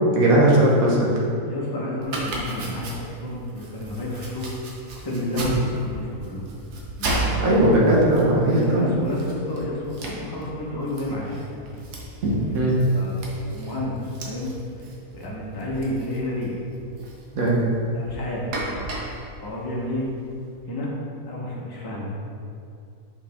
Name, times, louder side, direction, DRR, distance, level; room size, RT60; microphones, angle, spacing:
voice 1, 0.1-1.1 5.3-5.5 7.4-8.9 12.5-12.8 17.4-17.6, right 1 dB, 65° right, -4 dB, 1.4 m, -18 dB
voice 2, 1.4-4.5 4.9-6.5 7.0-7.6 8.4-11.3 12.3-14.5 15.1-16.6 17.9-18.9 19.4-20.1 20.7-20.9 21.3-22.1, left 1 dB, 20° left, -4 dB, 0.7 m, -30 dB
Domestic sounds home sounds, 2.0-20.5, right 2 dB, 85° right, 1.5 m, -35 dB
5.6 x 4.8 x 3.5 m, 2.4 s
omnidirectional pair, 1.6 m